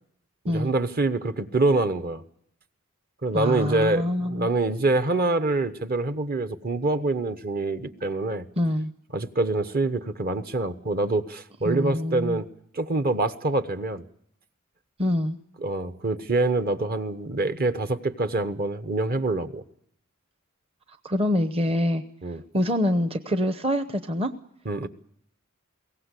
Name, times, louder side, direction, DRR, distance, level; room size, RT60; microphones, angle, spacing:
voice 1, 0.4-2.2 3.2-8.4 9.1-12.4 12.7-14.0 15.6-19.6 22.2-22.4 24.7-24.9, right 2 dB, 45° right, 11 dB, 1.1 m, -25 dB
voice 2, 3.3-4.5 8.6-8.9 11.6-12.4 15.0-15.4 21.0-22.0 22.5-24.3, left 1 dB, 30° right, 10 dB, 0.9 m, -25 dB
22.0 x 17.5 x 8.2 m, 0.71 s
head